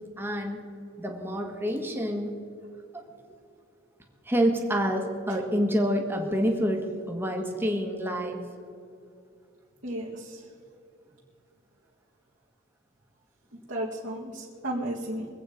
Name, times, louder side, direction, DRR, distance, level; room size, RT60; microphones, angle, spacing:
voice 1, 0.2-0.7 1.0-2.4 2.9-3.0 4.3-8.4, equal, 10° right, 2 dB, 1.7 m, -27 dB
voice 2, 9.8-10.4 13.7-15.3, right 1 dB, 60° right, -6 dB, 1.9 m, -33 dB
23.5 x 8.6 x 5.2 m, 2.5 s
head